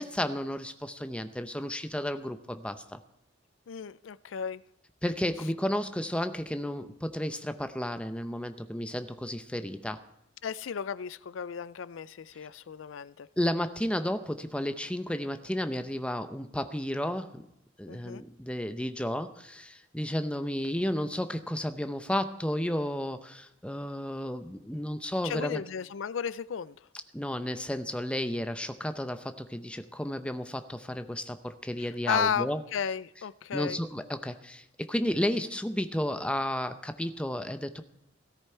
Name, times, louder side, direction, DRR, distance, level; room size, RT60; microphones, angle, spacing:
voice 1, 0.0-3.0 5.0-10.0 13.4-17.4 17.8-25.6 27.1-32.6 33.5-37.8, left 1 dB, 5° left, 0.7 m, -32 dB
voice 2, 3.7-4.6 10.4-13.3 17.9-18.2 25.2-26.8 31.8-33.8, left 7 dB, 80° left, 0.4 m, -34 dB
16.5 x 14.0 x 4.5 m
head